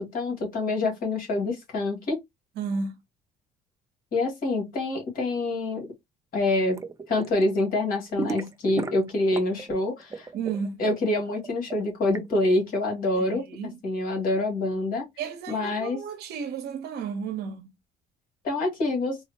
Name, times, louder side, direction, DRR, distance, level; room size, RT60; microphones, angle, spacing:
voice 1, 0.0-2.2 4.1-5.9 6.3-6.8 7.1-10.3 10.8-15.1 15.5-16.0 18.4-19.2, left 2 dB, 60° left, 1.8 m, -26 dB
voice 2, 2.6-2.9 10.3-10.8 13.2-13.8 15.2-17.7, right 5 dB, 75° right, 0.8 m, -33 dB
sound 1, 6.7-7.4 7.7-9.7 10.0-12.2, right 4 dB, 20° right, 0.5 m, -34 dB
4.0 x 2.0 x 2.8 m
cardioid pair, 110°, 17 cm